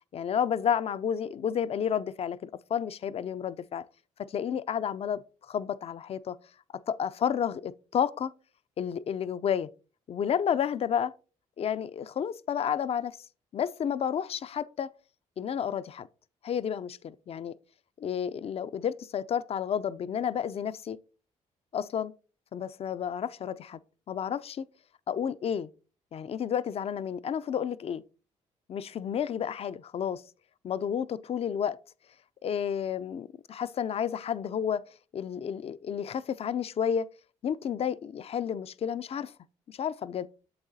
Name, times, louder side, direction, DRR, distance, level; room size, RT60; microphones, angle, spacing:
voice 1, 0.1-3.8 4.2-5.2 5.5-6.4 6.9-8.3 8.8-9.7 10.1-11.1 11.6-13.2 13.5-14.9 15.4-16.1 16.4-17.5 18.0-21.0 21.7-22.1 22.5-23.8 24.1-24.6 25.1-25.7 26.1-28.0 28.7-30.2 30.6-31.8 32.4-34.8 35.1-37.1 37.4-39.3 39.7-40.3, left 8 dB, 45° left, 0.4 m, -31 dB
8.7 x 7.2 x 2.7 m
cardioid pair, 80°, 14 cm